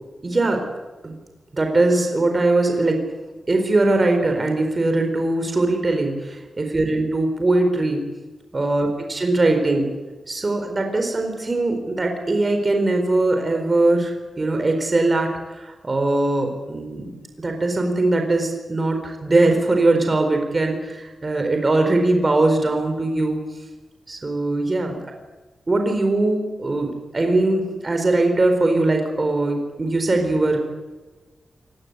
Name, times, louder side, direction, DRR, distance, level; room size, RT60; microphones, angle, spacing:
voice 1, 0.2-0.6 1.0-1.2 1.5-3.0 3.5-8.0 8.5-9.9 10.3-17.1 17.4-23.4 24.1-25.0 25.7-30.6, right 2 dB, 25° right, 4 dB, 4.4 m, -21 dB
28.0 x 20.0 x 8.2 m, 1.2 s
wide cardioid pair, 160°, 0 cm